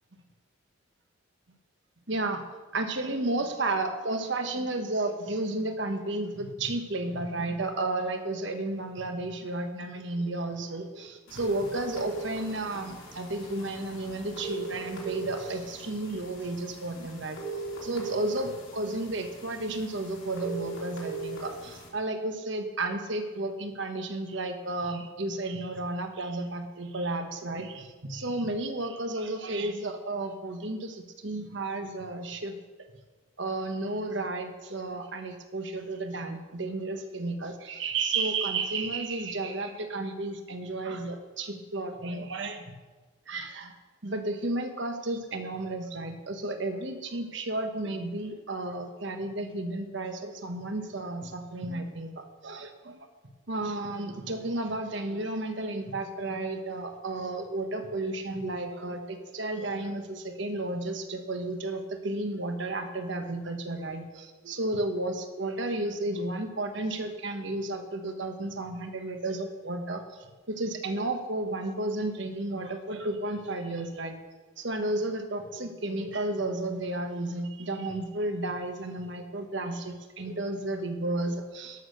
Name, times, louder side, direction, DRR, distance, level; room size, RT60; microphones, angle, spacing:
voice 1, 2.1-2.4 2.7-17.4 17.8-32.5 33.4-42.7 43.3-43.7 44.0-53.0 53.5-74.1 74.6-81.9, right 2 dB, 60° right, 5 dB, 1.3 m, -32 dB
sound 1, 11.3-21.9, right 3 dB, 85° left, 3.3 m, -39 dB
12.0 x 6.5 x 6.5 m, 1.3 s
head